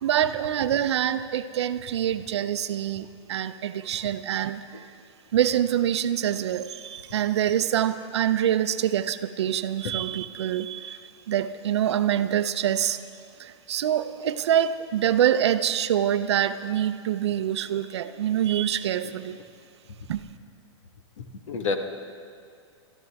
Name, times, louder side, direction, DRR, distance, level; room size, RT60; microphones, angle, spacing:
voice 1, 0.0-4.9 5.3-13.0 13.4-19.4 20.1-20.2, right 10 dB, 60° right, 11 dB, 0.6 m, -25 dB
voice 2, 21.2-21.8, left 4 dB, 85° left, 5 dB, 1.5 m, -29 dB
22.5 x 13.5 x 3.5 m, 2.3 s
supercardioid pair, 175°, 16 cm